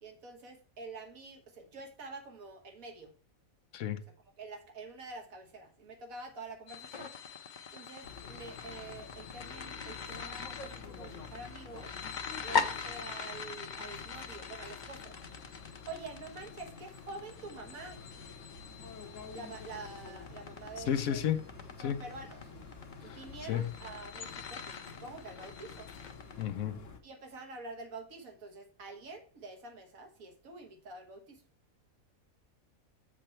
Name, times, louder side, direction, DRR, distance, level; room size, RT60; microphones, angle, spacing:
voice 1, 0.0-3.1 4.2-7.1 7.7-11.9 12.4-15.2 15.9-18.0 19.3-21.2 21.8-22.5 23.0-25.9 27.0-31.4, right 3 dB, 80° right, 1.8 m, -47 dB
sound 1, 6.7-26.4, left 5 dB, 45° left, 0.7 m, -41 dB
sound 2, 8.0-27.0, left 5 dB, 65° left, 1.3 m, -50 dB
sound 3, 17.6-23.6, right 1 dB, 55° right, 1.3 m, -57 dB
voice 2, 20.9-21.4 21.8-22.0 23.1-23.2 23.5-23.6 26.4-26.8, left 9 dB, 80° left, 1.1 m, -31 dB
7.7 x 5.1 x 4.4 m
omnidirectional pair, 1.4 m